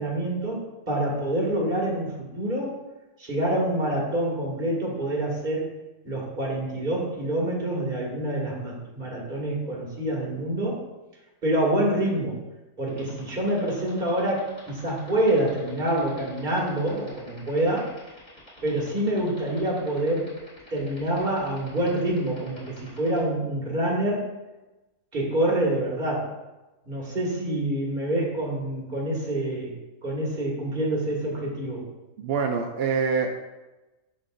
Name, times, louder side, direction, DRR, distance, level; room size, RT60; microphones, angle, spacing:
voice 1, 0.0-2.8 3.2-5.7 6.0-10.8 11.4-12.4 12.8-17.9 18.6-20.3 20.7-24.3 25.1-26.3 26.9-29.7 30.0-31.9, right 1 dB, 30° right, -4 dB, 2.0 m, -26 dB
sound 1, 12.9-23.2, equal, 30° left, 2.8 m, -49 dB
voice 2, 32.2-33.4, right 5 dB, 65° right, 3 dB, 0.6 m, -25 dB
12.0 x 4.4 x 2.6 m, 1.1 s
omnidirectional pair, 1.6 m